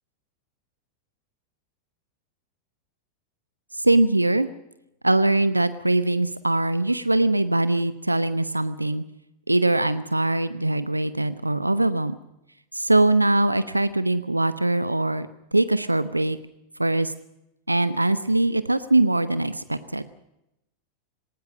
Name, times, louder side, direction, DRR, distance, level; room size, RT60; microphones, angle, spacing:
voice 1, 3.8-4.5 5.0-9.0 9.5-12.2 12.7-15.3 15.5-16.4 16.8-17.1 17.7-20.0, right 2 dB, 85° right, 14 dB, 0.8 m, -22 dB
19.0 x 18.5 x 7.4 m, 0.87 s
figure-of-eight pair, 90°, 0 cm